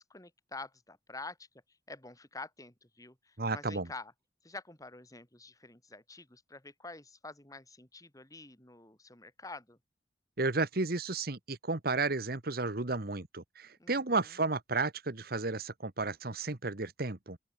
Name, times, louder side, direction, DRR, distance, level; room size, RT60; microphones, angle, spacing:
voice 1, 0.0-1.5 1.9-4.1 4.4-9.8 13.8-14.3, left 3 dB, 20° left, 4.3 m, -48 dB
voice 2, 3.4-3.9 10.4-17.4, right 3 dB, 60° right, 1.5 m, -33 dB
open air
head